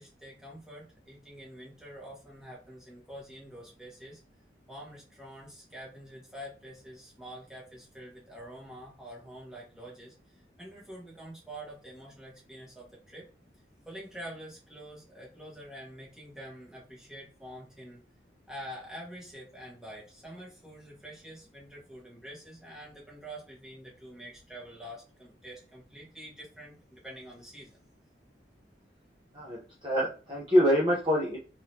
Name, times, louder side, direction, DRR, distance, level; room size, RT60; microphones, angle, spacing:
voice 1, 0.0-4.2 4.7-13.3 13.8-18.0 18.5-27.8, equal, 5° right, -5 dB, 1.4 m, -46 dB
voice 2, 29.3-31.4, equal, 25° right, -5 dB, 0.9 m, -25 dB
3.8 x 3.2 x 2.8 m, 0.35 s
head